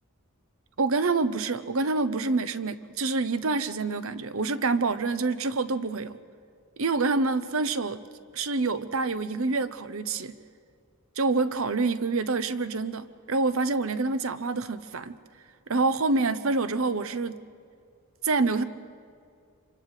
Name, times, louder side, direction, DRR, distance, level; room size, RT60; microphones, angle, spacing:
voice 1, 0.8-6.2 6.8-8.0 8.3-10.4 11.2-15.2 15.7-17.4 18.2-18.6, right 3 dB, 70° right, 12 dB, 0.9 m, -27 dB
27.0 x 24.5 x 5.0 m, 2.3 s
head